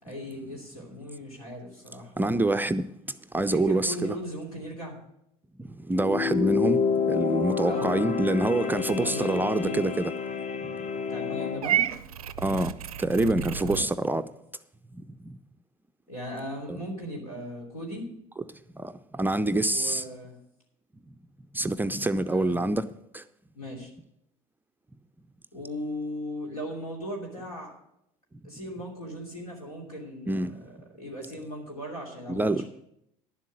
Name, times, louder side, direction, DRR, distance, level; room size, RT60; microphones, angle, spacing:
voice 1, 0.0-2.3 3.4-5.0 7.6-8.3 8.6-9.9 11.1-11.9 13.5-13.9 16.1-18.0 19.6-20.3 22.2-22.6 23.5-23.9 25.5-27.7 28.4-32.6, equal, 85° left, 2.8 m, -38 dB
voice 2, 2.2-2.8 3.3-4.2 5.6-6.8 7.1-10.1 12.4-14.3 15.3-15.4 16.7-16.8 18.8-20.0 21.5-22.8 23.1-23.2 30.3-30.6 32.3-32.6, right 2 dB, 10° right, 0.4 m, -26 dB
sound 1, 5.9-11.7, left 6 dB, 35° left, 1.0 m, -29 dB
Purr / Meow, 11.6-13.8, right 11 dB, 85° right, 0.4 m, -30 dB
11.0 x 7.4 x 6.2 m
hypercardioid pair, 70°, 18 cm